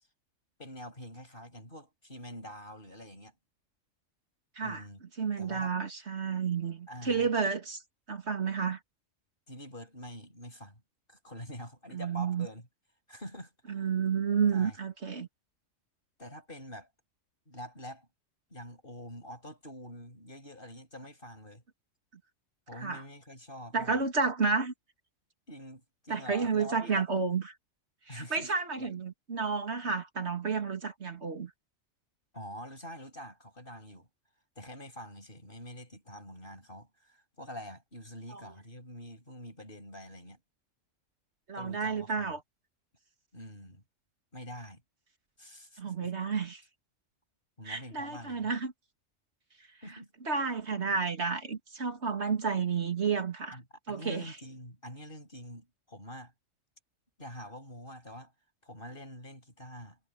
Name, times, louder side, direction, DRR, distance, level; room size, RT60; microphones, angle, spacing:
voice 1, 0.6-3.3 4.6-5.0 5.4-5.7 6.9-7.3 9.5-10.8 11.1-12.7 13.1-13.9 14.5-14.8 16.2-16.9 17.5-18.1 18.5-21.6 22.7-24.0 25.5-27.1 28.1-28.5 28.8-28.9 32.3-34.1 34.6-40.4 41.5-42.4 43.3-43.8 44.3-44.8 45.4-46.1 47.6-48.5 49.8-50.1 53.5-56.3 57.2-58.3 58.6-60.0, equal, 40° left, 7.6 m, -46 dB
voice 2, 5.2-7.8 8.1-8.8 11.9-12.5 13.7-15.3 22.8-23.0 23.7-24.7 26.1-27.4 28.1-31.5 38.3-38.4 41.5-42.4 45.8-46.6 47.7-48.7 50.2-53.6 53.9-54.3, right 5 dB, 55° right, 2.5 m, -31 dB
omnidirectional pair, 1.4 m